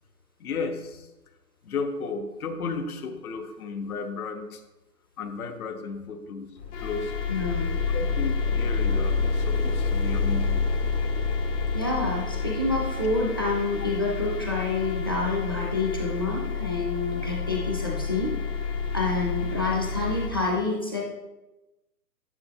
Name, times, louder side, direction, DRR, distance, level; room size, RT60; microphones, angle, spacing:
voice 1, 0.4-1.1 1.6-4.6 5.2-6.5 6.8-7.1 7.9-10.7, left 4 dB, 65° left, 7 dB, 1.2 m, -33 dB
sound 1, 6.6-20.3, left 4 dB, 80° left, 2.4 m, -28 dB
voice 2, 7.3-7.7 11.7-18.3 18.9-21.0, left 3 dB, 15° left, -3 dB, 0.5 m, -28 dB
10.5 x 6.8 x 2.8 m, 1.0 s
hypercardioid pair, 160°, 47 cm